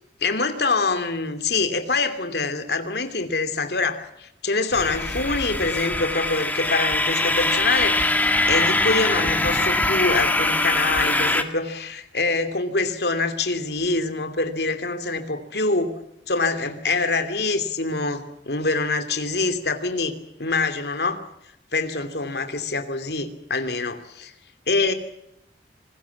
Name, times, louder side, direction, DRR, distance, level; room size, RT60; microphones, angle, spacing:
voice 1, 0.2-15.9 16.3-21.2 21.7-24.3 24.7-24.9, left 3 dB, 65° left, 9 dB, 2.8 m, -25 dB
sound 1, 4.7-11.4, left 2 dB, 10° left, 1.8 m, -22 dB
26.5 x 20.5 x 7.3 m, 0.81 s
head